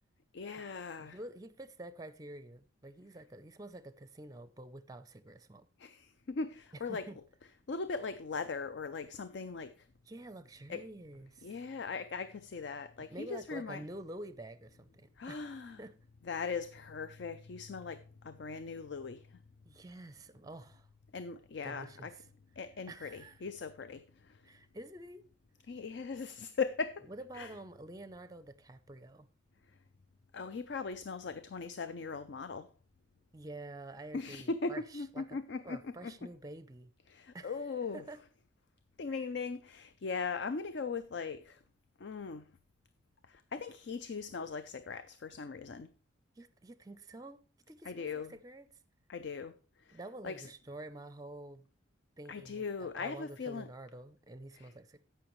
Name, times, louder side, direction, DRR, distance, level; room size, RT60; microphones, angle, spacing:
voice 1, 0.3-1.2 5.8-7.0 7.7-9.7 10.7-10.8 11.4-13.8 15.2-15.8 16.3-19.2 21.1-22.1 22.6-24.0 25.7-27.1 27.3-27.5 30.3-32.7 34.1-36.1 37.1-38.0 39.0-41.6 42.0-42.4 43.3-45.9 47.9-48.3 49.1-49.5 49.9-50.0 50.2-50.5 52.3-53.7 54.6-54.7, left 4 dB, 60° left, 0.4 m, -39 dB
voice 2, 1.0-5.7 6.7-7.2 10.1-11.5 13.0-15.9 19.7-20.9 21.6-22.3 22.9-23.4 24.4-25.2 27.1-29.3 33.3-35.4 35.6-36.9 37.3-37.7 37.9-38.2 39.1-39.2 46.4-47.4 47.7-48.7 49.9-51.7 52.2-55.0, right 1 dB, 20° right, 0.5 m, -48 dB
16.0 x 5.7 x 3.1 m
head